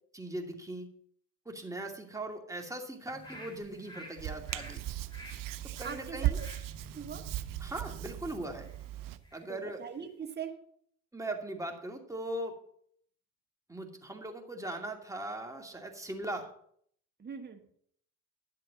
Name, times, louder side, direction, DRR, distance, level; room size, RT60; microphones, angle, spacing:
voice 1, 0.1-0.9 1.5-4.9 5.8-6.4 7.6-8.7 9.3-9.8 11.1-12.6 13.7-16.5, right 1 dB, 10° right, 2 dB, 2.5 m, -39 dB
sound 1, 3.1-9.5 9.9-10.0, left 1 dB, 10° left, 3.9 m, -52 dB
Hands, 4.2-9.2, right 14 dB, 60° right, 0.8 m, -37 dB
voice 2, 5.8-6.5 6.9-7.2 9.5-10.5 17.2-17.6, right 7 dB, 25° right, 5 dB, 1.5 m, -41 dB
11.0 x 7.8 x 5.2 m, 0.63 s
hypercardioid pair, 65°, 38 cm